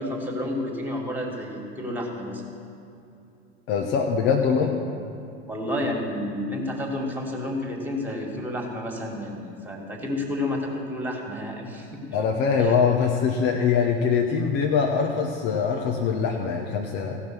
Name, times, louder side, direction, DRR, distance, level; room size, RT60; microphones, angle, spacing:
voice 1, 0.0-2.4 5.5-12.0 12.6-12.7, left 1 dB, 5° right, 0 dB, 2.3 m, -30 dB
voice 2, 3.7-4.7 12.1-17.2, left 6 dB, 45° left, 2 dB, 1.1 m, -23 dB
16.5 x 5.8 x 6.2 m, 2.6 s
figure-of-eight pair, 80°, 34 cm